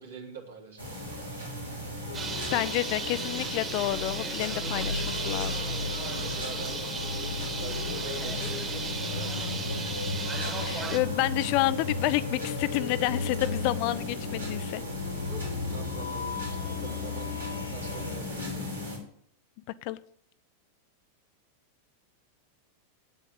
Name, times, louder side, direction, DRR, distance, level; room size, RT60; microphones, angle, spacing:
voice 1, 0.0-1.4 6.0-6.8 7.6-9.9 15.3-19.0, right 4 dB, 65° right, 1 dB, 3.1 m, -45 dB
sound 1, 0.8-19.0, left 2 dB, 80° right, 3.8 m, -38 dB
sound 2, 2.1-18.2, left 3 dB, 75° left, 1.4 m, -36 dB
Bird, 2.1-11.0, right 4 dB, 25° right, 2.4 m, -36 dB
voice 2, 2.5-5.6 10.6-14.8 19.8-20.0, left 17 dB, 45° left, 16 dB, 0.5 m, -29 dB
9.0 x 8.0 x 7.8 m, 0.64 s
figure-of-eight pair, 90°, 0 cm